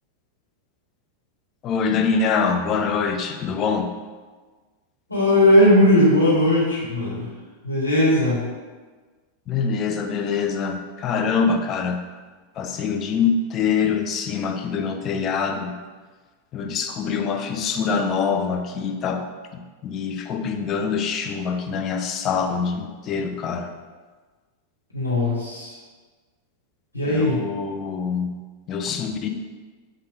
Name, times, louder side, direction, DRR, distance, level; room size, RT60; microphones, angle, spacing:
voice 1, 1.6-3.9 9.5-12.0 12.6-15.8 16.5-19.3 19.5-23.7 27.1-28.3 28.7-29.3, left 5 dB, 30° left, 5 dB, 0.3 m, -24 dB
voice 2, 5.1-7.3 7.6-8.5 24.9-25.7 26.9-27.4, left 1 dB, 85° left, -8 dB, 1.1 m, -18 dB
3.6 x 2.2 x 3.5 m, 1.4 s
figure-of-eight pair, 90°, 0 cm